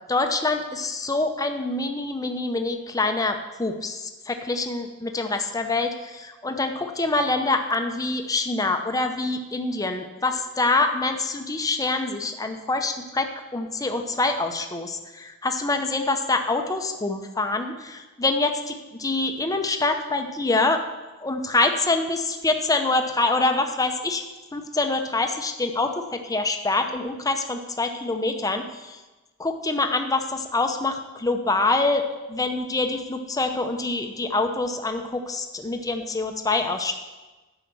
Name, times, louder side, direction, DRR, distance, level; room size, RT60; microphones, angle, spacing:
voice 1, 0.1-20.8 21.2-24.2 24.5-29.0 29.4-32.0 32.3-37.0, left 2 dB, 15° left, 6 dB, 0.7 m, -25 dB
10.0 x 5.8 x 7.0 m, 1.1 s
head